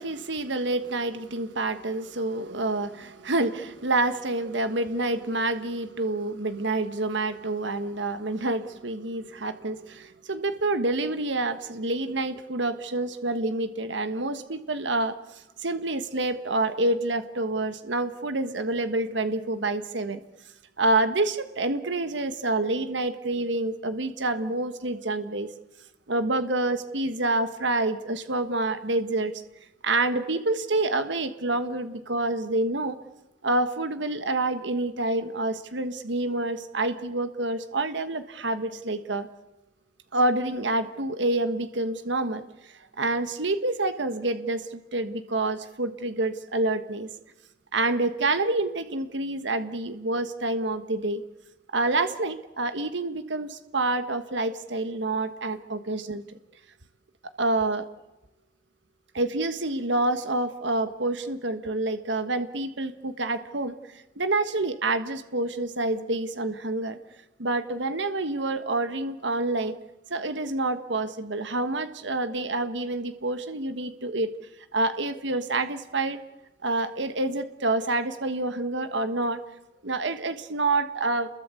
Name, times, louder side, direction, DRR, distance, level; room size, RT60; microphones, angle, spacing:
voice 1, 0.0-15.1 15.6-20.2 20.8-25.5 26.1-29.3 29.8-33.0 33.4-39.3 40.1-42.4 43.0-47.1 47.7-51.2 51.7-56.2 57.4-57.8 59.1-67.0 67.4-69.7 70.1-74.3 74.7-76.2 76.6-79.4 79.8-81.3, right 2 dB, 75° right, 10 dB, 1.4 m, -27 dB
29.0 x 22.0 x 8.3 m, 1.0 s
head